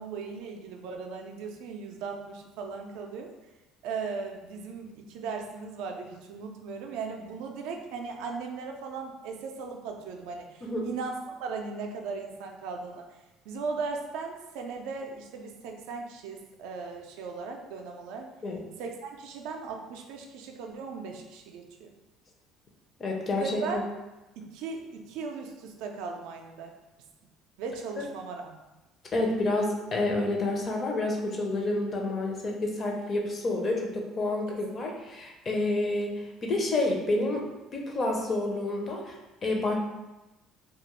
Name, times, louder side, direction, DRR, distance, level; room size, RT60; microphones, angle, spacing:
voice 1, 0.0-3.3 3.8-13.1 13.5-18.3 18.8-21.9 23.4-23.8 24.4-26.7 27.6-28.7 34.5-34.6, right 4 dB, 85° right, 3 dB, 0.3 m, -37 dB
voice 2, 23.0-23.6 29.1-37.4 37.7-39.7, left 2 dB, 35° left, 0 dB, 0.5 m, -29 dB
2.2 x 2.1 x 2.9 m, 1.0 s
cardioid pair, 120°, 0 cm